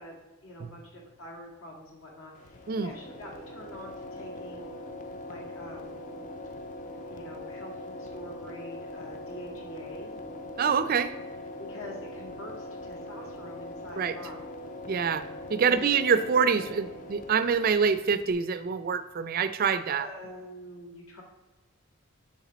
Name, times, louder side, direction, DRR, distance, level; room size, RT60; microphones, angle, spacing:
voice 1, 0.0-4.8 5.2-5.9 7.1-10.1 11.6-14.5 15.6-16.0 19.9-21.2, left 1 dB, 65° left, 0 dB, 1.9 m, -45 dB
sound 1, 2.3-18.3, left 1 dB, 35° left, 0.5 m, -42 dB
voice 2, 10.6-11.1 14.0-14.1 14.9-15.2 15.5-20.1, right 6 dB, 40° right, 12 dB, 0.4 m, -25 dB
7.1 x 6.6 x 4.0 m, 1.2 s
head